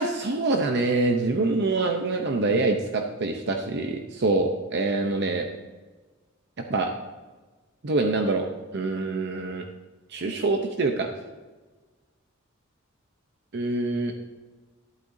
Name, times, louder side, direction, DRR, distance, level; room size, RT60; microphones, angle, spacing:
voice 1, 0.0-5.5 6.7-6.9 7.8-8.4 8.7-9.6 10.1-11.1 13.5-14.1, right 3 dB, 55° right, 4 dB, 0.7 m, -25 dB
12.0 x 11.5 x 2.7 m, 1.3 s
head